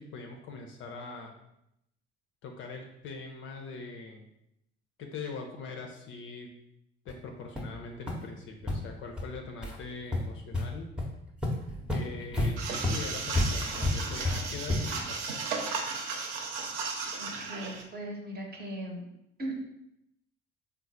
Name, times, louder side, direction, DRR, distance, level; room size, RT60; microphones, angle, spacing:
voice 1, 0.0-1.3 2.4-4.3 5.0-6.5 7.0-10.9 11.9-15.4, left 4 dB, 40° left, 3 dB, 0.5 m, -42 dB
sound 1, 7.1-7.2 7.6-7.7 8.1-8.2 8.6-8.7 9.2-9.3 9.6-9.8 10.1-10.6 11.0-11.1 11.4-15.1, left 2 dB, 5° right, 0.7 m, -31 dB
sound 2, 12.6-17.8, right 4 dB, 65° right, 0.6 m, -35 dB
voice 2, 17.1-19.1 19.4-19.6, right 1 dB, 30° right, 1 dB, 0.9 m, -38 dB
3.8 x 2.0 x 4.1 m, 0.81 s
figure-of-eight pair, 55°, 32 cm